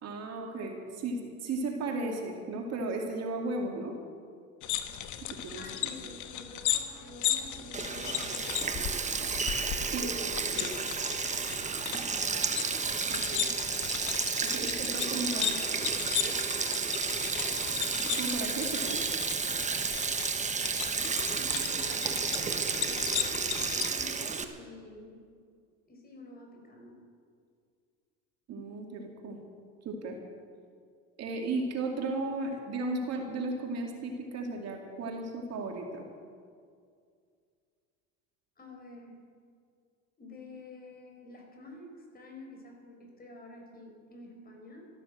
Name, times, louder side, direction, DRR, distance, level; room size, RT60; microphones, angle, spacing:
voice 1, 0.0-3.9 5.2-5.7 9.9-10.8 13.1-13.5 14.4-15.6 18.0-19.0 28.5-29.4 29.8-30.2 31.2-36.0, right 2 dB, 45° right, 2 dB, 2.5 m, -35 dB
sound 1, 4.6-23.9, left 11 dB, 55° left, 1.3 m, -36 dB
voice 2, 5.5-8.6 9.9-10.9 14.7-15.9 16.2-16.7 21.0-23.2 23.7-25.2 25.9-27.0 38.6-39.2 40.2-44.9, left 2 dB, 25° left, 2 dB, 4.5 m, -49 dB
Sink (filling or washing), 7.7-24.4, right 5 dB, 20° right, 1.2 m, -32 dB
13.5 x 12.5 x 7.7 m, 2.2 s
supercardioid pair, 105°, 35 cm